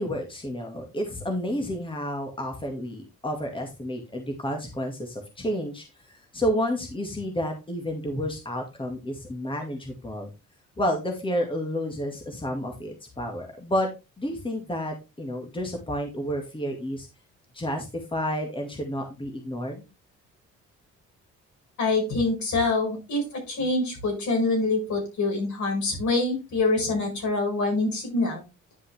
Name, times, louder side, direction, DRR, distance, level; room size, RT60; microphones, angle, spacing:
voice 1, 0.0-10.3 10.8-13.9 14.2-17.1 17.5-19.9, equal, 15° left, 3 dB, 2.0 m, -30 dB
voice 2, 21.8-28.4, left 3 dB, 70° left, 1 dB, 5.2 m, -25 dB
10.0 x 5.4 x 3.4 m, 0.27 s
cardioid pair, 90°, 30 cm